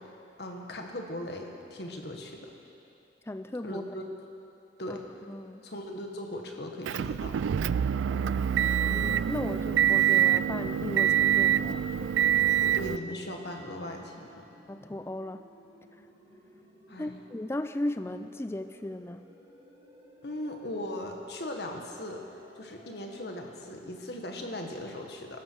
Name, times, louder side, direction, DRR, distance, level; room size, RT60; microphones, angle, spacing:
voice 1, 0.0-2.5 3.6-4.2 4.8-5.0 5.6-7.4 12.6-14.4 16.9-17.2 20.2-22.2 22.5-25.4, left 1 dB, 60° left, 2 dB, 1.6 m, -39 dB
voice 2, 3.3-3.9 4.9-5.7 8.1-8.3 8.8-12.1 14.7-15.4 17.0-19.3, left 1 dB, 15° left, 10 dB, 0.3 m, -36 dB
Motor vehicle (road) / Engine, 6.9-13.0, right 10 dB, 85° right, 0.3 m, -25 dB
sound 1, 8.3-23.2, equal, 30° right, 4.9 m, -57 dB
21.5 x 13.0 x 4.7 m, 2.7 s
head